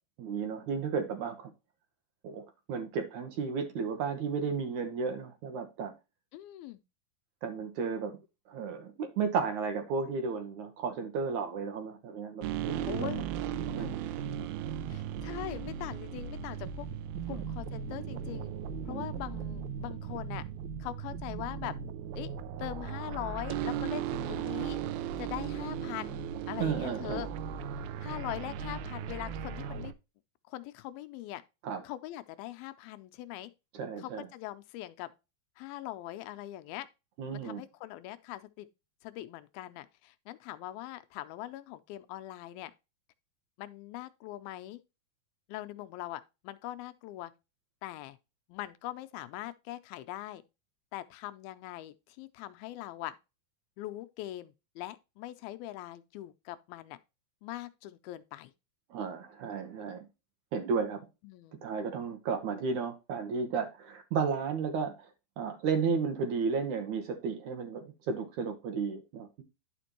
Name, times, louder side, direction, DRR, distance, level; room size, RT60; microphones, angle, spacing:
voice 1, 0.2-1.5 2.2-5.9 7.4-8.2 8.5-13.1 13.8-13.9 17.3-17.4 18.9-19.1 26.6-27.2 31.6-31.8 33.7-34.3 37.2-37.6 58.9-60.0 60.5-61.0 61.6-65.1 65.4-69.4, right 5 dB, 65° right, 2.0 m, -33 dB
voice 2, 6.3-6.8 12.9-13.3 13.8-13.9 14.9-16.9 17.3-18.5 18.8-20.4 20.8-21.8 22.1-22.3 22.6-24.8 25.2-27.3 28.0-29.9 30.5-31.4 31.8-33.5 34.0-35.1 35.6-36.9 37.3-38.7 39.0-42.7 43.6-44.8 45.5-47.3 47.8-48.2 48.5-50.4 50.9-53.2 53.8-57.0 57.4-58.5 61.2-61.6, left 15 dB, 80° left, 2.4 m, -41 dB
sound 1, 12.4-29.9, right 8 dB, 90° right, 2.5 m, -37 dB
11.0 x 5.2 x 2.9 m
omnidirectional pair, 4.4 m